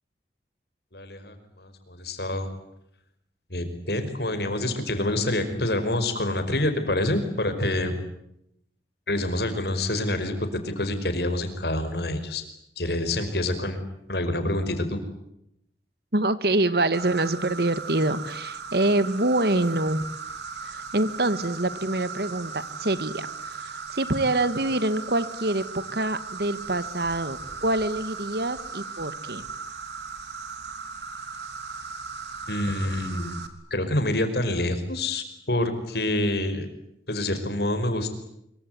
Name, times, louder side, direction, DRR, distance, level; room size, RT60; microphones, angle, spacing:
voice 1, 0.9-2.5 3.5-8.0 9.1-12.4 12.8-13.8 14.1-15.0 32.5-33.4 33.7-36.7 37.1-38.1, left 1 dB, 65° left, 8 dB, 5.3 m, -27 dB
voice 2, 16.1-20.1 20.6-29.5, right 2 dB, 60° right, 14 dB, 1.7 m, -26 dB
Insect, 16.9-33.5, right 5 dB, 80° right, 3.3 m, -37 dB
25.5 x 24.0 x 9.5 m, 0.78 s
head